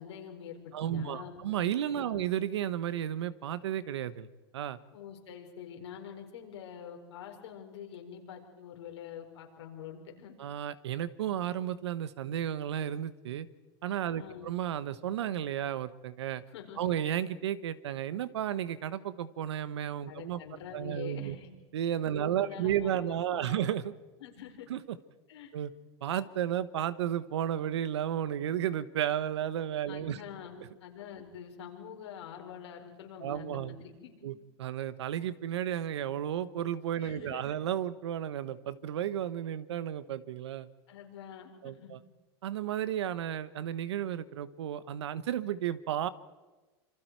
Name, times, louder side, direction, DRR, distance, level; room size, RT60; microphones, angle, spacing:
voice 1, 0.0-1.4 1.9-2.2 4.9-10.3 14.1-14.5 16.5-16.9 20.1-21.5 22.1-23.7 24.2-24.7 25.3-25.5 29.9-34.3 37.0-37.6 40.9-42.0, left 8 dB, 85° left, 2 dB, 4.5 m, -46 dB
voice 2, 0.7-4.3 4.5-4.8 10.4-13.5 13.8-16.4 16.8-20.4 20.7-21.4 21.7-23.9 24.7-24.8 25.5-25.7 26.0-30.2 33.2-33.7 34.2-40.7 41.6-42.0 42.4-46.1, right 10 dB, 90° right, 15 dB, 1.2 m, -33 dB
27.5 x 24.5 x 4.7 m, 1.2 s
supercardioid pair, 125°, 14 cm